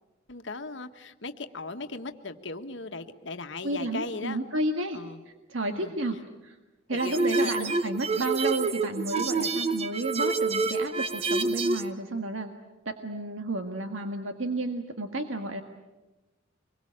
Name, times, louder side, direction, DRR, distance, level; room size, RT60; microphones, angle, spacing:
voice 1, 0.3-4.4 4.9-5.2 5.7-5.9 6.9-8.0, left 3 dB, 65° left, 7 dB, 1.5 m, -38 dB
voice 2, 3.6-5.0 5.5-6.2 6.4-6.6 6.9-12.5 12.8-15.6, right 2 dB, 85° right, 6 dB, 1.7 m, -31 dB
sound 1, 7.0-11.9, right 3 dB, 35° right, 1.0 m, -27 dB
25.5 x 22.5 x 8.8 m, 1.1 s
head